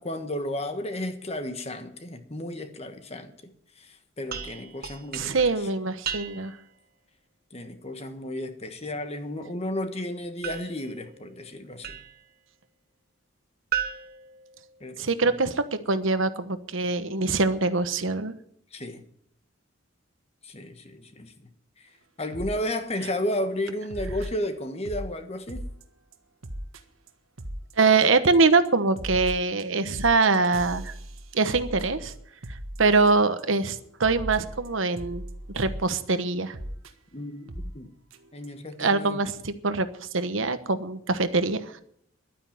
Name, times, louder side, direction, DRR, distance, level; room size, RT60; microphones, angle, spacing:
voice 1, 0.0-3.3 3.8-5.4 7.5-12.0 14.8-15.1 18.7-19.0 20.4-21.5 21.8-21.9 22.2-25.6 37.1-37.9 38.3-39.2, left 1 dB, 30° left, 1.4 m, -33 dB
sound 1, 4.3-6.7 10.4-12.3 13.7-15.2, right 8 dB, 45° right, 1.3 m, -36 dB
voice 2, 5.1-6.5 15.0-18.3 27.8-30.9 31.3-32.1 32.8-35.2 35.5-36.5 38.8-41.8, right 3 dB, 70° right, 1.1 m, -23 dB
sound 2, 22.3-22.6 23.0-23.2 23.9-25.1 25.5-25.8 26.1-26.2 26.4-26.8 27.1-27.2 27.4-27.7 28.0-28.4 28.6-33.4 33.7-33.8 34.0-35.8 36.5-36.9 37.5-37.7 38.1-38.2 38.4-38.5, equal, 85° right, 1.5 m, -37 dB
11.5 x 9.3 x 8.9 m
head